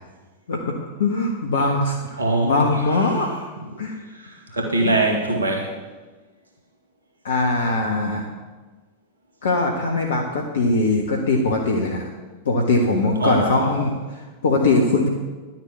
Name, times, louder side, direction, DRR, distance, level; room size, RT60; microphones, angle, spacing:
voice 1, 1.0-3.3 3.8-4.0 4.5-4.9 7.2-8.2 9.4-12.1 12.4-15.1, left 2 dB, 65° left, 1 dB, 1.5 m, -21 dB
voice 2, 2.2-2.6 4.2-5.7 13.2-13.7, right 2 dB, 75° right, 1 dB, 2.1 m, -22 dB
11.5 x 7.5 x 8.3 m, 1.3 s
figure-of-eight pair, 90°, 0 cm